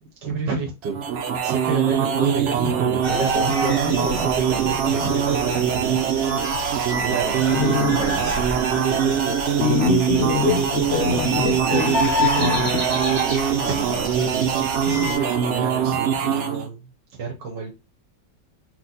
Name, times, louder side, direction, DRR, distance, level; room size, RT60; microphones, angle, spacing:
voice 1, 0.0-1.1 1.4-6.0 6.3-6.7 7.0-8.6 13.6-14.3 14.8-17.7, right 4 dB, 75° right, 1.5 m, -30 dB
sound 1, 0.8-16.7, right 8 dB, 90° right, 0.6 m, -23 dB
sound 2, 3.0-15.2, equal, 30° right, 2.0 m, -29 dB
sound 3, 3.8-4.8 5.1-9.1 9.4-9.5 10.0-10.1 10.7-12.7 13.5-15.5 15.8-15.9, right 2 dB, 5° right, 0.4 m, -36 dB
voice 2, 7.6-8.0 9.6-12.8, left 6 dB, 85° left, 0.6 m, -24 dB
4.4 x 2.4 x 4.0 m
omnidirectional pair, 1.9 m